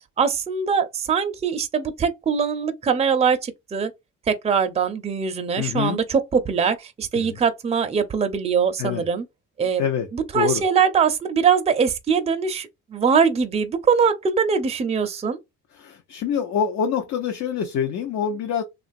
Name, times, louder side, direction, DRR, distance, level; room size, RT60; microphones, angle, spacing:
voice 1, 0.2-3.9 4.3-9.2 9.6-9.8 10.1-15.4, right 6 dB, 20° right, 0.5 m, -22 dB
voice 2, 5.6-6.0 7.1-7.4 8.8-9.0 9.8-10.1 10.3-10.6 15.7-18.6, left 7 dB, 55° left, 0.6 m, -25 dB
2.9 x 2.4 x 2.5 m
cardioid pair, 100°, 33 cm